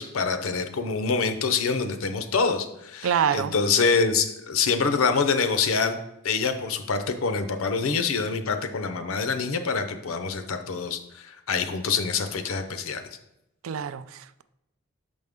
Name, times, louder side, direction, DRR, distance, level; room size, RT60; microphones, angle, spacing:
voice 1, 0.0-13.0, left 5 dB, 80° left, 0.6 m, -26 dB
voice 2, 3.0-3.5 13.6-14.4, right 8 dB, 75° right, 0.3 m, -26 dB
6.4 x 5.2 x 3.5 m
head